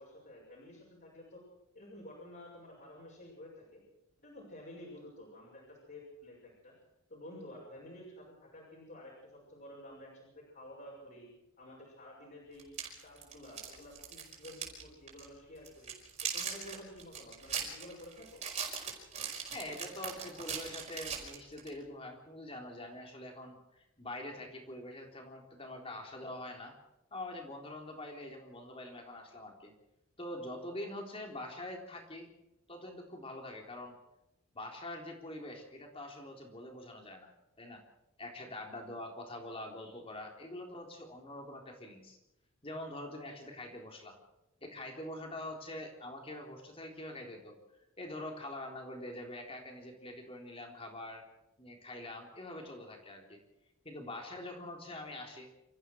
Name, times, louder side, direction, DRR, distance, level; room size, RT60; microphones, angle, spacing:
voice 1, 0.0-1.4 1.7-3.8 4.2-6.7 7.1-11.3 11.6-12.7 13.0-15.9 16.3-18.4, left 1 dB, 45° left, -5 dB, 6.6 m, -51 dB
sound 1, 12.6-14.8 15.1-15.3 15.6-21.7, right 7 dB, 35° right, 5.3 m, -40 dB
voice 2, 19.5-26.8 27.1-29.7 30.2-32.3 32.7-34.0 34.5-37.3 37.6-37.8 38.2-42.2 42.6-44.2 44.6-47.6 48.0-51.2 51.6-53.4 53.8-55.5, left 1 dB, 25° left, 2 dB, 3.8 m, -44 dB
28.0 x 14.5 x 6.4 m, 0.89 s
head